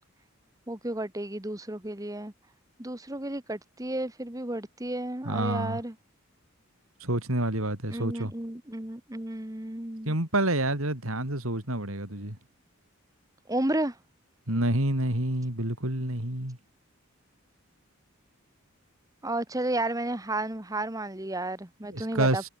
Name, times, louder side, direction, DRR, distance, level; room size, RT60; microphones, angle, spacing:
voice 1, 0.7-2.3 2.8-5.9 7.9-10.1 13.5-14.0 19.2-22.5, right 1 dB, 15° right, 1.4 m, -32 dB
voice 2, 5.2-5.8 7.0-8.3 10.1-12.4 14.5-16.6 21.8-22.5, right 1 dB, 75° right, 4.9 m, -28 dB
head